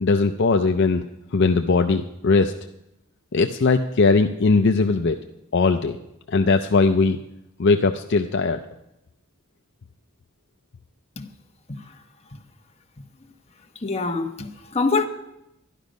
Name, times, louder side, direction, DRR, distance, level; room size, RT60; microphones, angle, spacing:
voice 1, 0.0-1.1 1.3-2.5 3.3-5.2 5.5-6.0 6.3-7.2 7.6-8.6, left 3 dB, 55° left, 0.5 m, -19 dB
voice 2, 13.8-15.0, left 4 dB, 30° left, 1.1 m, -25 dB
11.5 x 11.5 x 5.3 m
head